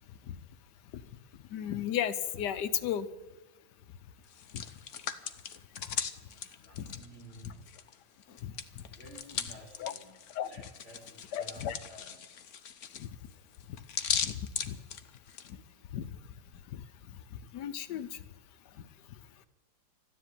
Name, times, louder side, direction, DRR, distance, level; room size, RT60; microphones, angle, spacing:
voice 1, 1.5-3.1 4.5-4.6 6.8-6.9 7.4-7.5 8.4-8.8 9.8-9.9 10.3-10.5 11.3-11.8 13.0-13.1 14.2-14.8 15.9-16.1 17.3-18.2, left 10 dB, 70° left, 12 dB, 1.4 m, -34 dB
Hands, 4.2-7.9 8.2-15.5, left 7 dB, 50° left, 1.0 m, -38 dB
voice 2, 6.1-7.6 8.9-10.1 10.4-12.1, equal, 35° right, -4 dB, 4.1 m, -53 dB
14.0 x 10.0 x 9.4 m, 1.1 s
omnidirectional pair, 2.0 m